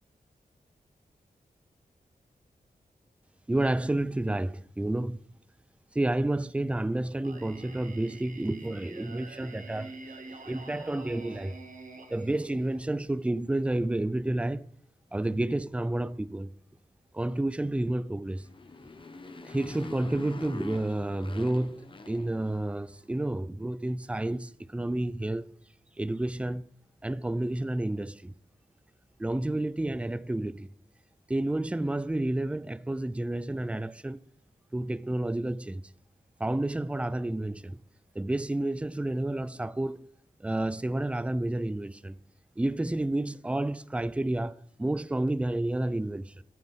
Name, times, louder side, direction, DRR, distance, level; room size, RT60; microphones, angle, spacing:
voice 1, 3.5-5.2 5.9-9.9 10.5-11.6 12.1-14.7 15.1-16.5 17.1-18.5 19.5-25.5 26.0-26.6 27.0-28.3 29.2-30.7 31.3-34.2 34.7-35.8 36.4-37.8 38.1-40.1 40.4-42.2 42.6-46.4, right 1 dB, 10° right, 0.4 m, -30 dB
Singing, 7.2-13.2, right 3 dB, 60° right, 1.9 m, -47 dB
Motorcycle, 18.3-22.9, left 3 dB, 35° left, 1.2 m, -45 dB
14.0 x 9.7 x 5.6 m
wide cardioid pair, 145°, 15 cm